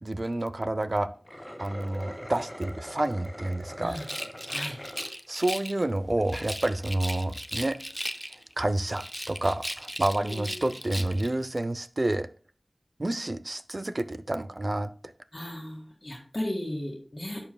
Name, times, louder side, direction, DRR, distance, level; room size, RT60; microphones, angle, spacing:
voice 1, 0.0-1.1 1.6-4.0 5.3-7.8 8.6-12.3 13.0-14.9, right 1 dB, 45° right, 12 dB, 0.5 m, -29 dB
sound 1, 1.1-5.1 5.6-5.7 6.2-6.5, equal, 20° left, 3.0 m, -42 dB
Rattle, 3.9-5.8 6.3-8.5 8.9-11.3, equal, ahead, 0.5 m, -37 dB
voice 2, 10.2-10.7 15.3-17.4, left 1 dB, 45° left, -2 dB, 1.8 m, -36 dB
10.5 x 7.1 x 2.3 m, 0.41 s
wide cardioid pair, 60°, 0 cm